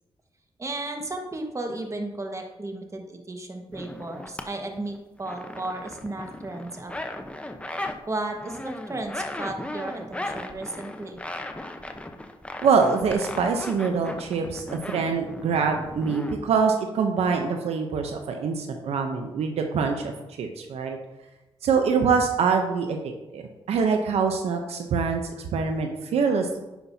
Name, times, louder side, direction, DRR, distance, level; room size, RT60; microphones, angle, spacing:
voice 1, 0.6-7.1 8.1-11.2, right 2 dB, 30° right, 3 dB, 1.5 m, -34 dB
sound 1, 3.7-4.4 4.8-8.0 8.3-16.3, left 1 dB, 10° left, 0.8 m, -36 dB
voice 2, 12.6-20.1 20.4-21.0 21.6-23.4 23.7-26.6, right 5 dB, 75° right, 4 dB, 0.7 m, -24 dB
10.0 x 5.7 x 2.8 m, 1.0 s
cardioid pair, 55°, 11 cm